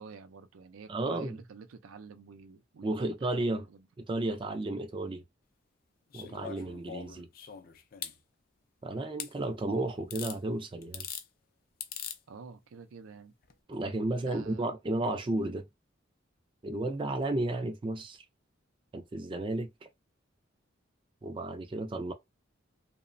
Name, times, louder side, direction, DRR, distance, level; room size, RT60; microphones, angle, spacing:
voice 1, 0.0-3.8 12.3-13.3 14.1-14.7, right 5 dB, 90° right, 0.4 m, -49 dB
voice 2, 0.9-1.4 2.8-3.7 4.0-5.2 6.1-7.3 8.8-11.1 13.7-15.7 16.6-18.2 18.9-19.9 21.2-22.1, right 2 dB, 25° right, 0.3 m, -33 dB
sound 1, 6.1-8.2 9.2-9.3 10.1-10.4 10.8-11.3 11.8-12.2 13.4-13.5, left 9 dB, 45° left, 0.4 m, -41 dB
2.9 x 2.1 x 2.5 m
head